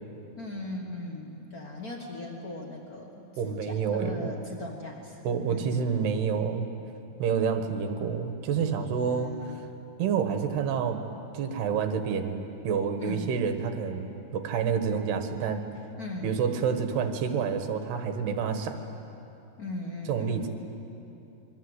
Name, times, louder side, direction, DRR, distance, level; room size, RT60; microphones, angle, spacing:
voice 1, 0.3-6.2 9.0-9.6 13.0-13.5 16.0-16.5 19.6-20.5, left 2 dB, 85° left, 1 dB, 0.8 m, -39 dB
voice 2, 3.4-4.3 5.3-6.7 7.2-9.6 10.0-11.0 11.3-12.4 12.6-15.6 16.2-18.8 20.1-20.5, right 6 dB, 75° right, 6 dB, 3.4 m, -28 dB
27.0 x 22.5 x 8.1 m, 2.8 s
omnidirectional pair, 4.8 m